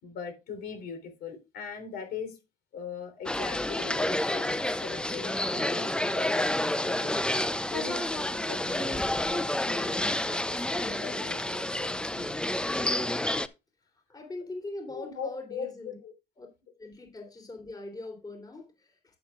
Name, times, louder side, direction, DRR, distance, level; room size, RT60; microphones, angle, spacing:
voice 1, 0.0-2.4 2.7-12.5 14.9-16.1, left 6 dB, 70° left, 3.6 m, -41 dB
sound 1, 3.3-13.5, left 1 dB, 5° left, 0.6 m, -29 dB
voice 2, 14.1-16.0 16.4-16.5 16.8-19.2, left 2 dB, 25° left, 3.4 m, -41 dB
11.5 x 9.2 x 2.4 m
cardioid pair, 110°, 17 cm